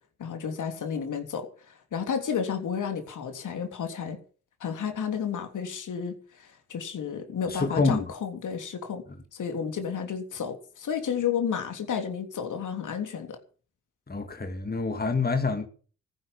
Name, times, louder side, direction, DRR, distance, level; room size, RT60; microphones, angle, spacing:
voice 1, 0.2-4.2 4.6-9.0 9.3-13.4, left 7 dB, 65° left, 3.3 m, -32 dB
voice 2, 7.5-8.0 14.1-15.7, left 4 dB, 30° left, 2.3 m, -27 dB
14.5 x 10.5 x 7.2 m
hypercardioid pair, 45°, 33 cm